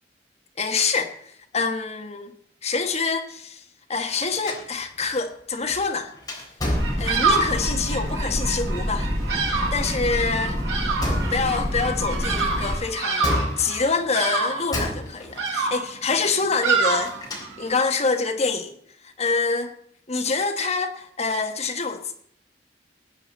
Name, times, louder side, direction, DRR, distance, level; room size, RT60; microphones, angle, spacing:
voice 1, 0.6-2.3 2.6-3.6 3.9-6.1 7.0-9.1 9.5-10.6 11.3-17.1 17.6-18.8 19.0-19.7 20.1-22.2, left 4 dB, 40° left, 5 dB, 1.3 m, -26 dB
sound 1, 4.5-7.6 11.0-11.7 13.2-14.1 14.7-15.6 16.8-17.7, left 1 dB, 20° left, 3.8 m, -30 dB
sound 2, 6.7-12.7, equal, 20° right, 6.7 m, -28 dB
Bird vocalization bird call bird song, 6.7-17.7, right 4 dB, 80° right, 5.5 m, -27 dB
19.5 x 8.9 x 4.3 m, 0.67 s
head